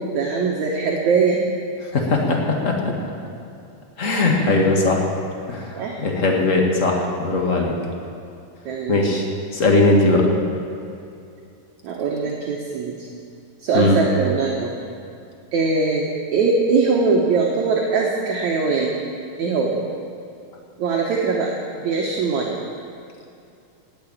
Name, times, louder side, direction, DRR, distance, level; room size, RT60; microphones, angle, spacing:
voice 1, 0.0-1.4 4.2-4.5 5.7-6.0 8.7-9.0 11.8-13.1 13.6-14.7 15.5-19.0 19.4-19.8 20.8-22.6, right 4 dB, 65° right, -1 dB, 2.2 m, -21 dB
voice 2, 1.9-2.9 4.0-5.0 5.5-7.7 8.9-9.3 9.5-10.3 13.7-14.0, left 2 dB, 45° left, 0 dB, 1.0 m, -19 dB
19.0 x 7.0 x 8.7 m, 2.6 s
omnidirectional pair, 4.1 m